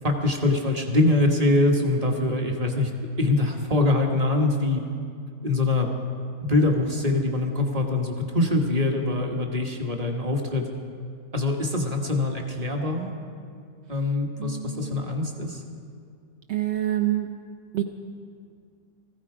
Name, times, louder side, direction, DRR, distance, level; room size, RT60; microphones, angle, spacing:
voice 1, 0.0-2.9 3.2-4.8 5.4-5.9 6.4-10.6 11.3-13.1 13.9-15.6, left 2 dB, 25° right, 2 dB, 1.3 m, -23 dB
voice 2, 14.4-15.1 16.5-17.3 17.7-17.8, right 13 dB, 70° right, 4 dB, 0.6 m, -27 dB
19.5 x 15.0 x 4.9 m, 2.3 s
omnidirectional pair, 1.9 m